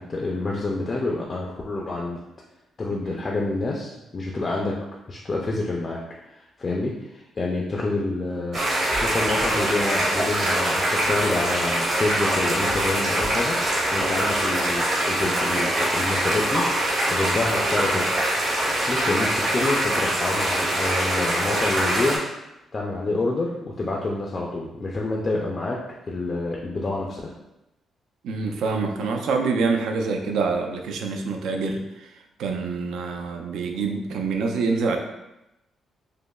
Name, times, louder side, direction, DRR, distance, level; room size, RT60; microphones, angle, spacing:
voice 1, 0.0-2.2 2.8-4.7 5.1-6.0 6.3-8.6 8.9-13.6 13.9-16.6 17.1-18.1 18.9-22.2 22.7-25.8 26.1-27.3, left 2 dB, 25° left, -2 dB, 0.3 m, -27 dB
sound 1, 8.5-22.2, right 1 dB, 45° right, 1.0 m, -23 dB
voice 2, 28.2-32.1 32.4-35.0, right 4 dB, 85° right, 4 dB, 0.4 m, -26 dB
5.0 x 2.0 x 2.3 m, 0.92 s
cardioid pair, 175°, 0 cm